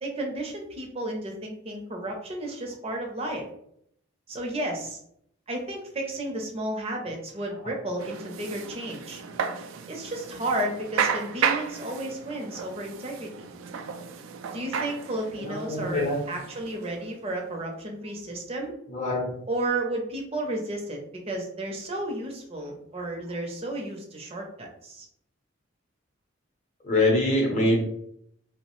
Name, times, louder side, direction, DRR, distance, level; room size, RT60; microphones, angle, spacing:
voice 1, 0.0-3.5 4.3-5.0 5.5-9.2 9.9-13.5 14.5-18.7 19.5-21.0 21.3-25.1, right 1 dB, 30° right, 1 dB, 0.5 m, -32 dB
sound 1, 8.0-17.3, right 6 dB, 80° right, 0.3 m, -33 dB
voice 2, 15.4-16.2 18.9-19.3 26.8-27.8, left 1 dB, 35° left, -1 dB, 0.7 m, -24 dB
2.9 x 2.0 x 2.9 m, 0.72 s
head